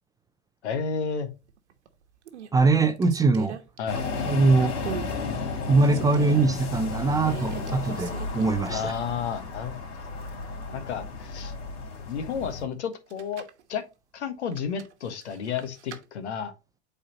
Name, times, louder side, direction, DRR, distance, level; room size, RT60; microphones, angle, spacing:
voice 1, 0.6-1.3 3.8-4.0 8.7-9.7 10.7-11.5 12.0-13.8 14.1-16.5, left 6 dB, 80° left, 1.5 m, -32 dB
sound 1, 1.5-1.9 2.3-4.4 4.8-5.2 5.5-6.6 7.2-9.0 9.3-9.4 12.9-13.6 14.5-16.0, right 9 dB, 80° right, 1.1 m, -40 dB
voice 2, 2.5-3.6 4.3-4.7 5.7-8.9, right 3 dB, 10° right, 0.4 m, -22 dB
sound 2, 3.9-12.7, left 4 dB, 50° left, 3.1 m, -33 dB
8.4 x 4.2 x 2.8 m
hypercardioid pair, 110°, 34 cm